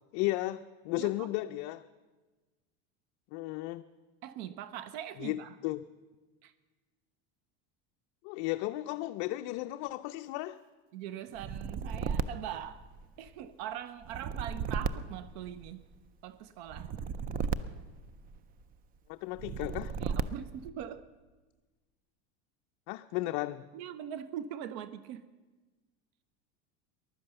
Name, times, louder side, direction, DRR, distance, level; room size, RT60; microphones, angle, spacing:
voice 1, 0.1-1.9 3.3-3.8 5.2-5.8 8.2-10.6 19.1-20.0 22.9-23.6, left 17 dB, 55° left, 8 dB, 0.5 m, -34 dB
voice 2, 1.0-1.3 4.2-5.5 6.4-6.5 10.9-12.8 13.2-15.9 16.2-16.9 20.0-21.1 23.7-25.3, right 10 dB, 70° right, 15 dB, 0.7 m, -42 dB
sound 1, 11.4-13.3 14.0-16.0 16.7-18.6 19.4-20.7, right 6 dB, 25° right, 0.4 m, -35 dB
15.5 x 11.5 x 6.8 m, 1.3 s
supercardioid pair, 145°, 34 cm